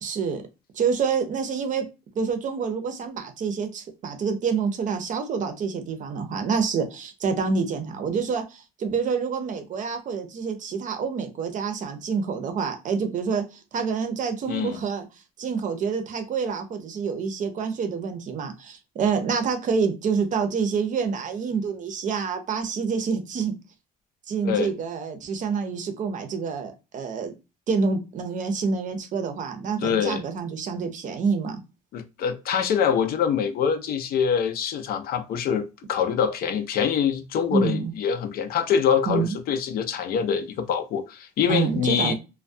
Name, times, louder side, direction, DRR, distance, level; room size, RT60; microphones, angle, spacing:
voice 1, 0.0-0.4 0.7-1.8 2.2-15.1 15.4-23.6 24.3-27.3 27.7-31.6 37.5-37.9 39.1-39.3 41.5-42.1, right 5 dB, 50° right, 0.6 m, -27 dB
voice 2, 14.5-14.8 24.4-24.7 29.8-30.2 31.9-42.1, left 7 dB, 65° left, 0.5 m, -25 dB
2.3 x 2.2 x 2.5 m
cardioid pair, 110°, 17 cm